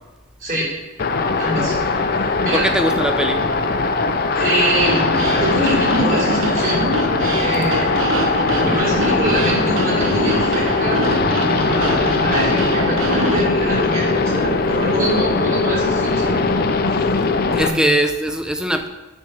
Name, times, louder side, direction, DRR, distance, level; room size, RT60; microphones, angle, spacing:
voice 1, 0.4-0.7 1.4-1.8 2.1-2.7 4.4-5.0 5.3-6.9 7.4-7.9 8.6-11.1 11.3-16.4 17.5-18.0, right 1 dB, 40° right, -5 dB, 3.2 m, -24 dB
sound 1, 1.0-17.7, left 3 dB, 45° left, 0.5 m, -20 dB
voice 2, 2.5-3.4 17.5-18.9, right 1 dB, 5° right, 6 dB, 0.5 m, -20 dB
sound 2, 4.8-13.4, right 1 dB, 70° right, 1.0 m, -24 dB
9.2 x 4.4 x 6.2 m, 1.1 s
head